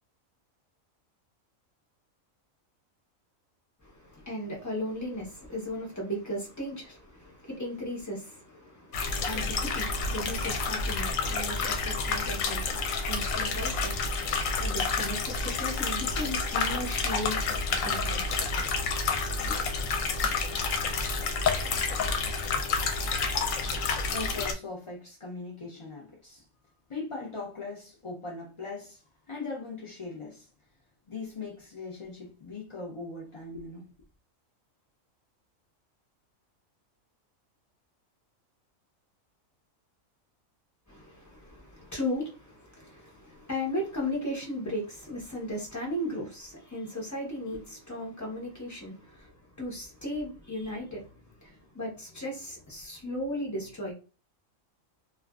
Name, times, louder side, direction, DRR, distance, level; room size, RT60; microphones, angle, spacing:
voice 1, 3.8-14.0 14.6-17.4 17.8-18.2 19.4-19.6 40.9-53.9, left 1 dB, 15° left, 0.7 m, -36 dB
sound 1, 8.9-24.5, left 4 dB, 80° left, 0.9 m, -29 dB
voice 2, 24.0-26.4 26.9-29.0 29.3-30.5 31.1-33.9, left 3 dB, 45° left, 0.4 m, -39 dB
2.4 x 2.4 x 2.3 m
omnidirectional pair, 1.4 m